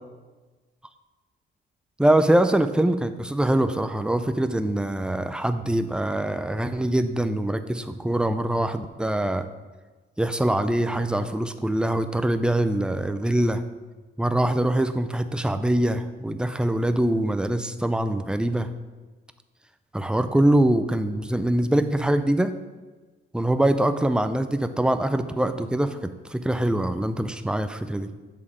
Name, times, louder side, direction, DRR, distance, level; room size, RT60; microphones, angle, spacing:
voice 1, 2.0-9.5 10.2-13.6 14.2-18.7 19.9-22.5 23.3-28.1, right 1 dB, 5° right, 9 dB, 0.4 m, -23 dB
8.4 x 3.6 x 4.9 m, 1.3 s
cardioid pair, 90°, 20 cm